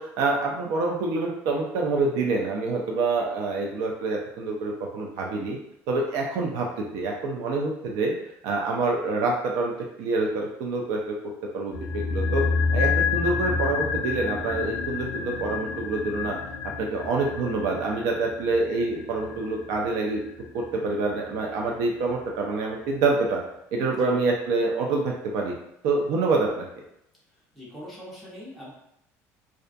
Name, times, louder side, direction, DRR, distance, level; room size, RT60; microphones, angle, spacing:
voice 1, 0.0-5.6 5.9-8.1 8.4-9.7 10.0-11.2 11.5-12.4 12.7-16.4 16.6-20.2 20.5-23.4 23.7-25.5 25.8-26.8, right 3 dB, 75° right, -1 dB, 0.4 m, -26 dB
sound 1, 11.7-22.0 22.2-22.3, left 5 dB, 75° left, 0.4 m, -29 dB
voice 2, 23.8-24.2 27.3-28.7, left 1 dB, ahead, -8 dB, 0.7 m, -42 dB
2.3 x 2.2 x 2.5 m, 0.78 s
cardioid pair, 160°, 6 cm